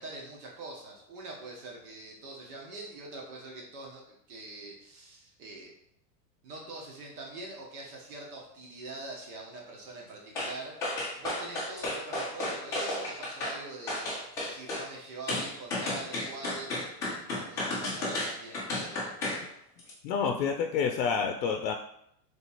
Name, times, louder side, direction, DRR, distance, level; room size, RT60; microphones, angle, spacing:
voice 1, 0.0-5.7 6.4-16.7 17.5-19.4, right 2 dB, 60° right, -1 dB, 1.5 m, -44 dB
sound 1, 10.4-10.5 10.8-13.6 13.9-14.9 15.3-19.4 19.8-19.9, left 2 dB, 5° left, 0.4 m, -33 dB
voice 2, 20.0-21.7, left 6 dB, 90° left, 4 dB, 0.6 m, -28 dB
3.4 x 3.0 x 4.2 m, 0.75 s
supercardioid pair, 155°, 50 cm